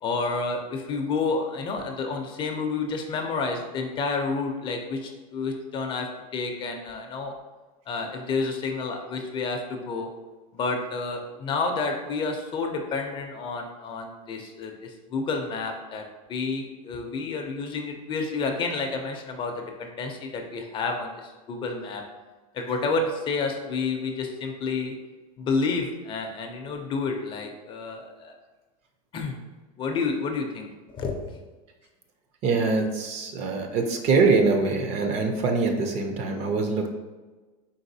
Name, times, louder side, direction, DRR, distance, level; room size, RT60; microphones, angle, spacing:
voice 1, 0.0-6.1 6.3-7.3 7.9-10.1 10.5-16.0 16.3-22.0 22.5-24.9 25.4-28.3 29.1-29.4 29.8-31.3, left 4 dB, 30° left, 3 dB, 0.4 m, -30 dB
voice 2, 32.4-36.9, right 4 dB, 40° right, 5 dB, 0.5 m, -23 dB
4.0 x 3.9 x 2.7 m, 1.3 s
supercardioid pair, 150°, 18 cm